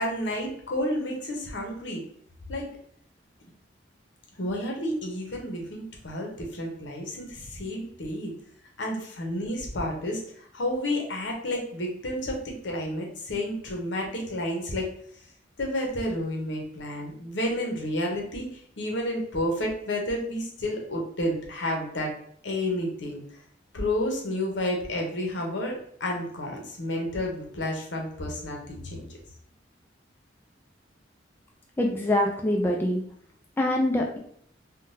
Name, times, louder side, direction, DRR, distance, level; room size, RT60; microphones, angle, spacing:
voice 1, 0.0-2.0 2.5-2.7 4.4-8.3 8.8-14.9 15.6-22.1 22.4-23.4 23.7-29.0, left 1 dB, 75° left, 1 dB, 0.8 m, -31 dB
voice 2, 31.8-33.0 33.6-34.2, left 1 dB, 10° left, 0 dB, 0.3 m, -24 dB
3.6 x 2.2 x 2.6 m, 0.63 s
head